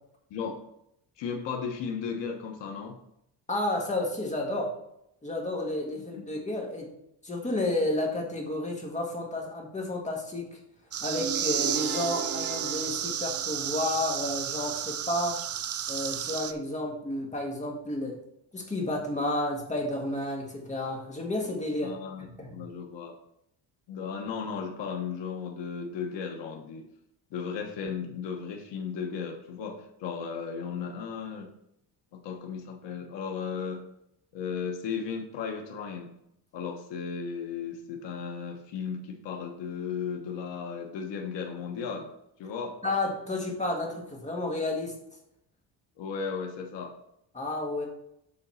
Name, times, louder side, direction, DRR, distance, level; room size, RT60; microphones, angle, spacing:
voice 1, 0.3-0.6 1.2-3.0 5.9-6.0 21.8-23.1 23.9-26.9 27.3-31.5 32.1-33.8 34.3-36.1 36.5-42.1 42.4-42.7 46.0-47.0, left 6 dB, 85° left, 2 dB, 1.2 m, -35 dB
voice 2, 3.5-4.7 5.2-6.9 7.2-10.6 11.0-15.4 15.9-18.1 18.5-21.9 22.2-22.5 42.8-44.9 47.3-47.9, left 1 dB, 15° left, 0 dB, 1.7 m, -31 dB
sound 1, 10.9-16.5, right 10 dB, 35° right, 0.4 m, -32 dB
sound 2, 11.2-14.0, right 5 dB, 55° right, 1.4 m, -38 dB
7.5 x 4.0 x 5.6 m, 0.77 s
cardioid pair, 145°, 42 cm